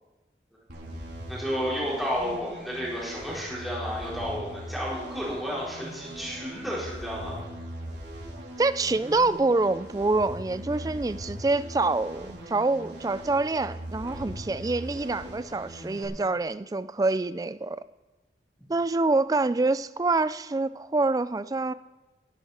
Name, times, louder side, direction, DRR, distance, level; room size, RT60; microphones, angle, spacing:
sound 1, 0.7-16.1, equal, 75° right, 3.5 m, -40 dB
voice 1, 1.3-7.3, equal, ahead, -7 dB, 4.5 m, -32 dB
voice 2, 8.6-17.8 18.7-21.7, right 3 dB, 20° right, 15 dB, 0.3 m, -26 dB
18.0 x 10.5 x 4.3 m, 1.2 s
head